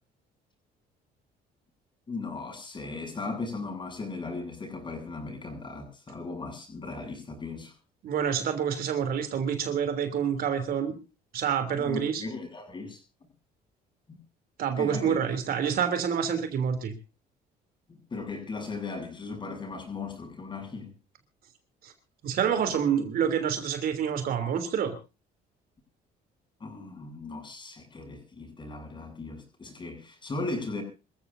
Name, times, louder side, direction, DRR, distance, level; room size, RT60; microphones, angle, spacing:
voice 1, 2.1-7.7 11.8-13.0 14.1-14.2 14.8-15.2 17.9-20.9 26.6-30.8, left 3 dB, 30° left, 7.5 m, -37 dB
voice 2, 8.0-10.9 11.3-12.2 14.6-16.9 21.8-21.9 22.2-24.9, right 8 dB, 60° right, 3.3 m, -27 dB
26.5 x 15.0 x 2.7 m
cardioid pair, 110°, 17 cm